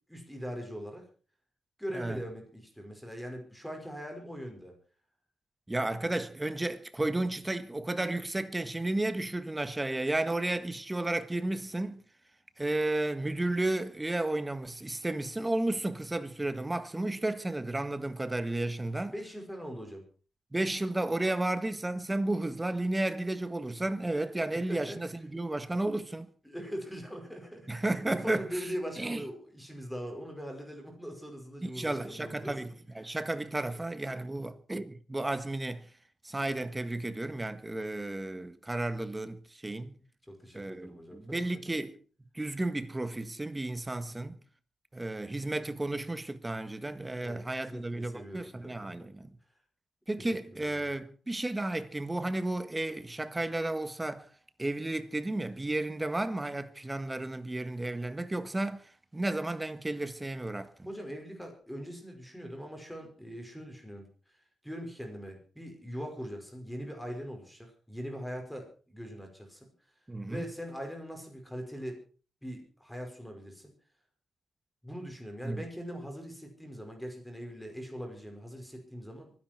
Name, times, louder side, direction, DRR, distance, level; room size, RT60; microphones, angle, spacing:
voice 1, 0.1-1.0 1.8-4.7 19.0-20.0 24.5-25.0 26.4-27.7 28.2-32.5 33.0-33.2 40.3-41.2 47.2-49.1 50.2-50.3 50.7-50.8 60.8-64.1 64.6-69.7 70.3-72.0 72.4-73.7 74.8-79.3, equal, ahead, 5.7 m, -41 dB
voice 2, 5.7-12.0 12.6-19.1 20.5-26.3 27.7-28.4 29.0-29.2 31.6-35.9 36.2-39.9 40.5-42.0 42.3-44.4 44.9-49.3 50.1-54.3 54.6-60.9 70.1-70.5 75.4-75.6, right 2 dB, 15° right, 1.4 m, -33 dB
24.0 x 10.5 x 4.7 m
cardioid pair, 120°, 0 cm